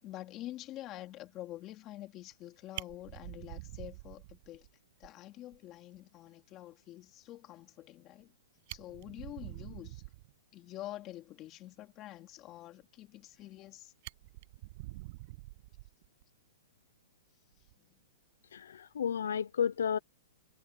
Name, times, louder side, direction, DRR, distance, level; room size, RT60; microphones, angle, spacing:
voice 1, 0.0-4.7 5.0-8.3 8.7-10.0 10.5-13.9 17.8-17.9, left 14 dB, 20° left, 2.9 m, -47 dB
Fire, 2.3-2.4 2.7-4.7 5.0-5.1 5.5-5.6 5.9-6.0 8.2-8.3 8.6-10.3 13.1-13.7 14.0-16.2 17.5-17.7, right 22 dB, 35° right, 7.6 m, -46 dB
voice 2, 18.5-20.0, left 8 dB, 85° left, 0.8 m, -32 dB
hypercardioid pair, 170°, 0 cm